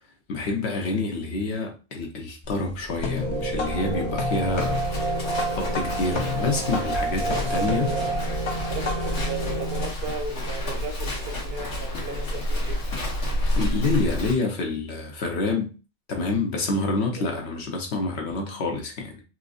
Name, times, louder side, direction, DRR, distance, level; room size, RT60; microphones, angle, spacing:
voice 1, 0.3-4.8 5.5-7.9 13.6-15.7 16.1-19.2, left 3 dB, 70° left, 1.2 m, -27 dB
sound 1, 2.4-9.3, left 4 dB, 40° left, 0.4 m, -32 dB
Livestock farm animals working animals, 3.0-14.3, left 1 dB, 85° left, 1.4 m, -30 dB
sound 2, 3.2-9.9, right 3 dB, 35° right, 0.7 m, -30 dB
voice 2, 6.4-6.9 7.2-8.2 8.7-12.8 17.2-17.4, right 5 dB, 65° right, 0.9 m, -36 dB
4.5 x 2.6 x 2.4 m
omnidirectional pair, 1.2 m